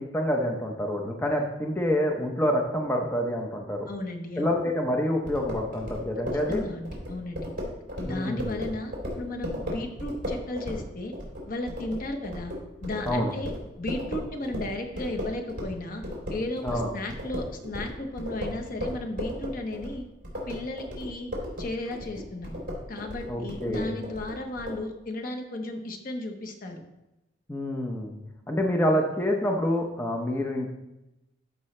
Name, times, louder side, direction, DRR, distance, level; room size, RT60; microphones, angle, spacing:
voice 1, 0.0-3.9 4.4-6.7 8.0-8.6 13.0-13.3 16.6-16.9 23.3-23.9 27.5-28.2 28.5-30.7, equal, 10° left, 1 dB, 0.8 m, -27 dB
voice 2, 3.9-4.6 6.3-7.5 8.0-11.1 11.5-12.5 12.8-13.5 13.8-16.0 16.3-20.0 20.5-21.3 21.6-22.6 22.9-26.8, left 1 dB, 50° left, 4 dB, 1.0 m, -34 dB
sound 1, 5.3-15.8 16.0-24.8, left 1 dB, 50° right, 2.9 m, -35 dB
13.0 x 5.4 x 3.2 m, 0.94 s
head